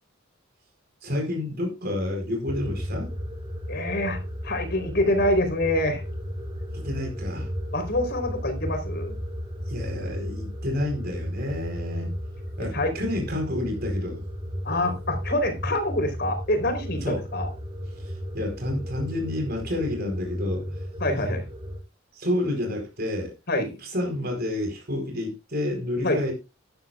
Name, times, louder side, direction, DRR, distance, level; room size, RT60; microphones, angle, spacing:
voice 1, 1.0-3.1 6.7-7.5 9.7-12.1 12.6-14.2 17.0-17.3 17.9-20.8 22.1-23.3 23.8-26.3, left 1 dB, 50° right, 4.5 m, -29 dB
sound 1, 2.5-21.8, equal, 30° right, 6.1 m, -34 dB
voice 2, 3.7-6.0 7.7-9.1 12.6-12.9 14.6-17.5 21.0-21.4 23.5-23.7 26.0-26.2, left 1 dB, 55° left, 4.1 m, -26 dB
13.5 x 11.5 x 2.5 m
head